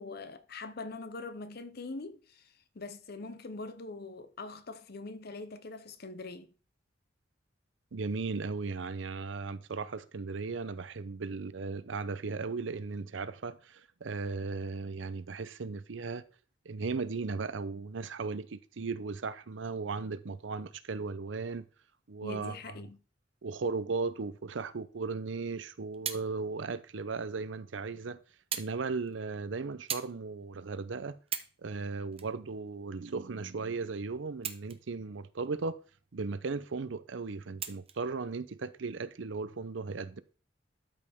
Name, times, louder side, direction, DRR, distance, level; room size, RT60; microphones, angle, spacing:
voice 1, 0.0-6.5 22.2-23.0, left 3 dB, 55° left, 0.8 m, -43 dB
voice 2, 7.9-16.2 16.6-21.7 22.1-22.9 23.4-28.2 28.5-31.2 31.6-35.8 36.1-40.2, right 4 dB, 80° right, 0.6 m, -36 dB
sound 1, 25.5-26.3 27.2-27.3 28.5-28.7 29.1-29.3 29.9-30.1 30.7-30.8 31.2-31.6 32.1-33.1 34.3-35.0 35.4-35.5 37.6-38.0 38.9-39.0, right 8 dB, 30° right, 0.7 m, -38 dB
12.0 x 5.5 x 3.5 m
head